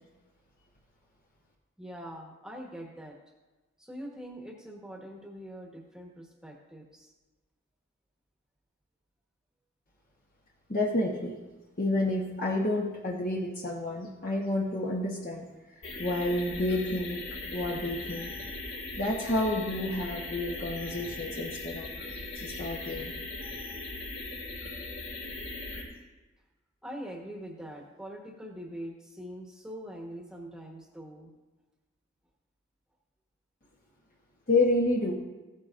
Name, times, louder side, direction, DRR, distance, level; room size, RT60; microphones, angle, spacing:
voice 1, 1.8-3.2 3.8-7.1 22.7-22.8 26.8-31.3, equal, 5° right, 0 dB, 1.2 m, -43 dB
voice 2, 10.7-11.3 11.8-15.5 15.8-17.2 17.5-18.3 19.0-21.9 22.3-23.1 34.5-35.1, left 2 dB, 45° left, -2 dB, 1.0 m, -29 dB
sound 1, 15.8-25.8, left 2 dB, 75° left, 2.4 m, -39 dB
15.0 x 9.4 x 2.6 m, 1.2 s
head